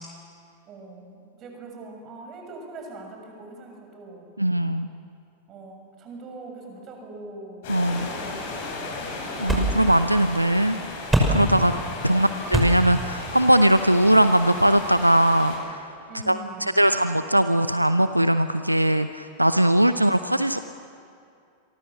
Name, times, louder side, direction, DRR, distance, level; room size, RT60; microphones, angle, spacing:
voice 1, 0.7-4.3 5.5-7.7 8.1-9.4 12.0-12.2 16.1-16.9 19.8-20.4, right 2 dB, 30° right, 3 dB, 6.8 m, -42 dB
voice 2, 4.4-4.9 7.7-8.1 9.4-10.8 11.3-11.7 12.0-15.9 16.3-16.4 16.8-20.6, right 1 dB, 90° right, 11 dB, 0.7 m, -20 dB
sound 1, 7.6-15.6, left 3 dB, 50° left, 7.4 m, -35 dB
sound 2, 7.8-14.9, right 1 dB, 10° right, 5.8 m, -29 dB
28.5 x 23.5 x 7.5 m, 2.4 s
figure-of-eight pair, 90°, 0 cm